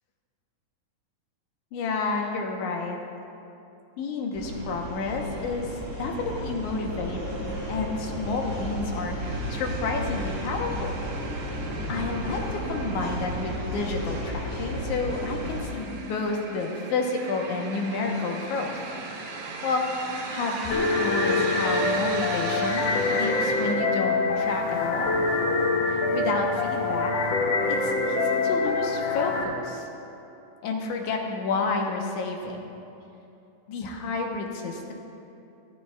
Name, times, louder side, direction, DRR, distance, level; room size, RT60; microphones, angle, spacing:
voice 1, 1.7-3.0 4.0-11.0 11.4-18.8 19.6-19.8 20.3-25.1 25.9-27.1 27.7-29.9 30.6-32.6 33.7-34.9, left 3 dB, 90° left, 1 dB, 2.4 m, -30 dB
sound 1, 4.3-15.7, equal, 35° right, 3.1 m, -33 dB
sound 2, 9.2-23.7, right 3 dB, 70° right, 2.2 m, -37 dB
sound 3, 20.7-29.4, left 3 dB, 70° left, 1.8 m, -25 dB
14.0 x 13.5 x 2.3 m, 2.8 s
omnidirectional pair, 3.4 m